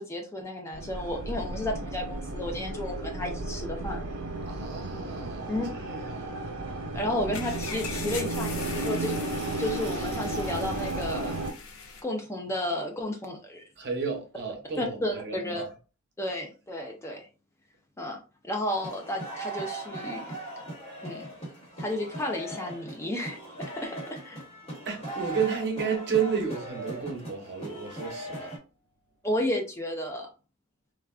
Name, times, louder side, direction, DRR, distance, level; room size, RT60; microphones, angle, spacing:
voice 1, 0.0-4.0 5.5-5.7 6.9-9.2 9.6-11.4 12.0-13.6 14.8-15.6 16.2-17.3 18.0-20.3 21.0-21.3 21.8-23.4 23.7-24.4 29.2-30.3, left 1 dB, 15° left, 0.3 m, -32 dB
sound 1, 0.7-11.5, right 2 dB, 85° right, 0.7 m, -34 dB
voice 2, 4.5-6.4 13.8-15.7 24.8-28.5, right 6 dB, 50° right, 0.8 m, -32 dB
sound 2, 7.3-12.0, left 4 dB, 75° left, 0.6 m, -40 dB
sound 3, 18.8-28.6, right 1 dB, 30° left, 1.1 m, -39 dB
3.4 x 2.1 x 2.3 m
head